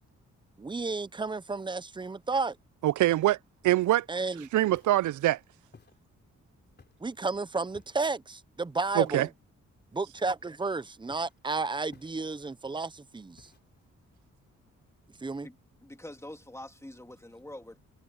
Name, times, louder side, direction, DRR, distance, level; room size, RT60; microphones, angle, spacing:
voice 1, 0.6-2.6 4.1-4.5 7.0-9.3 9.9-13.5 15.2-15.5, right 3 dB, 15° right, 0.7 m, -32 dB
voice 2, 2.8-3.4 3.6-4.1 4.5-5.4 9.0-9.3, right 15 dB, 75° right, 0.5 m, -24 dB
Walk footsteps, 4.7-5.1 5.7-6.0 6.8-7.1 7.7-8.1 9.0-9.3 10.2-10.7 11.1-11.4 11.9-12.5 13.4-13.9, left 4 dB, 35° left, 3.6 m, -56 dB
voice 3, 15.8-17.8, left 1 dB, 10° left, 2.2 m, -45 dB
cardioid pair, 100°, 30 cm